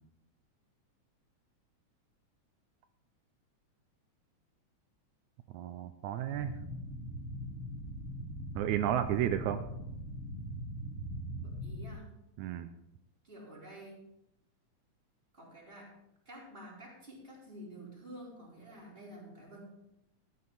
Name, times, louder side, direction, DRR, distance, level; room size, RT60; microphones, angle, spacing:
voice 1, 5.5-6.5 8.6-9.6 12.4-12.7, right 11 dB, 80° right, 9 dB, 1.9 m, -32 dB
sound 1, 6.3-11.9, equal, 75° left, 4.0 m, -41 dB
voice 2, 11.4-12.1 13.2-14.0 15.3-15.9 16.2-19.7, right 1 dB, 15° right, -5 dB, 4.3 m, -50 dB
13.5 x 9.6 x 4.1 m, 0.82 s
omnidirectional pair, 3.5 m